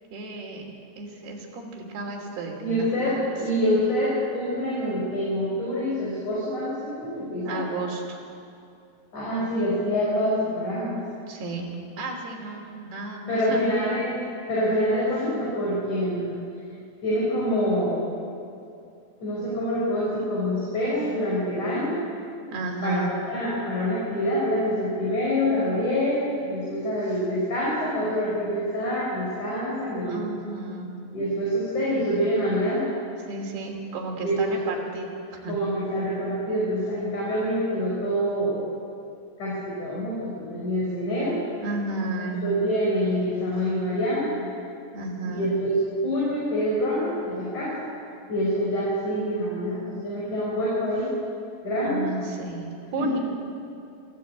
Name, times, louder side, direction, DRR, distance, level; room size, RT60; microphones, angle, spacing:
voice 1, 0.1-0.7 1.0-3.1 7.4-8.2 11.3-11.7 12.0-13.7 22.5-23.2 30.0-31.0 33.3-35.5 41.6-42.5 44.9-45.5 51.8-53.2, right 3 dB, 70° right, -1 dB, 5.0 m, -33 dB
voice 2, 2.6-7.6 9.1-11.0 13.3-14.2 14.5-16.3 17.0-18.0 19.2-22.0 22.8-23.0 23.3-30.2 31.1-32.9 34.2-34.6 35.5-38.6 39.4-41.4 42.4-44.3 45.3-45.7 46.0-47.9 48.3-51.1 51.6-52.1 53.0-53.1, equal, 45° left, -7 dB, 6.2 m, -26 dB
25.0 x 14.0 x 8.5 m, 2.6 s
omnidirectional pair, 4.9 m